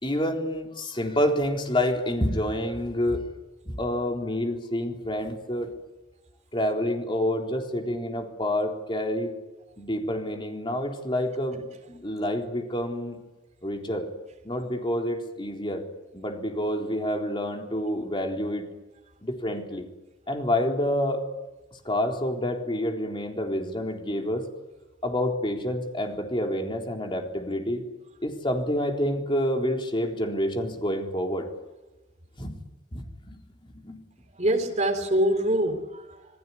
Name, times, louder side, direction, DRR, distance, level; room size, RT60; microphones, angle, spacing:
voice 1, 0.0-3.2 3.7-5.7 6.5-9.3 9.8-11.6 11.9-13.2 13.6-14.1 14.4-15.8 16.1-18.7 19.2-19.9 20.3-21.2 21.8-24.5 25.0-27.8 28.2-31.5 32.4-32.6 32.9-33.4 33.8-34.0, left 1 dB, 25° left, 2 dB, 3.8 m, -28 dB
voice 2, 34.3-36.3, right 1 dB, 40° right, 5 dB, 3.6 m, -25 dB
27.5 x 19.0 x 9.8 m, 1.1 s
head